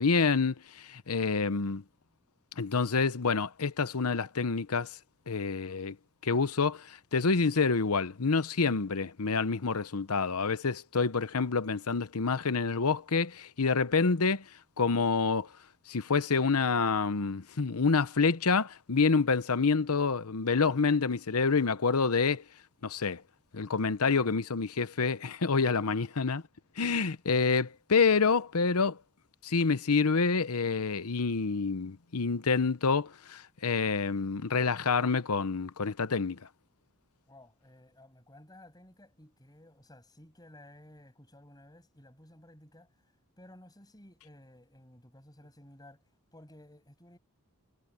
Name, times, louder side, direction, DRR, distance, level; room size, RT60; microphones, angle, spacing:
voice 1, 0.0-1.8 2.6-5.0 5.3-6.0 6.2-14.4 14.8-15.5 15.9-22.4 22.8-23.2 23.5-26.4 26.8-29.0 29.4-36.4, left 4 dB, 85° left, 0.9 m, -27 dB
voice 2, 37.3-42.9 43.4-46.0 46.3-47.2, left 1 dB, 20° left, 7.2 m, -55 dB
head